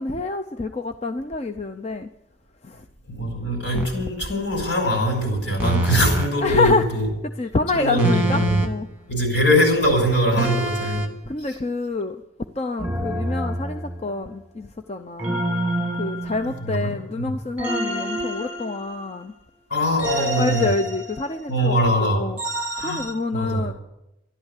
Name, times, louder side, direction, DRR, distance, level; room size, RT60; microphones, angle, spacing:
voice 1, 0.0-2.1 2.6-2.8 3.2-3.3 3.7-3.8 6.4-6.9 7.4-8.9 10.3-10.5 11.3-12.2 12.5-15.4 16.0-19.3 20.2-23.7, left 3 dB, 35° left, 0.5 m, -27 dB
voice 2, 3.1-7.1 7.7-8.6 9.1-11.0 16.4-17.3 19.7-20.7 21.5-22.2 22.8-23.0 23.3-23.7, equal, 70° left, 5.9 m, -22 dB
sound 1, 3.7-4.0 5.6-6.3 8.0-8.9 10.4-11.1 12.8-14.2 15.2-16.8 17.6-19.2 20.0-21.5 22.4-23.1, right 1 dB, 10° right, 1.5 m, -27 dB
13.5 x 11.5 x 8.3 m
head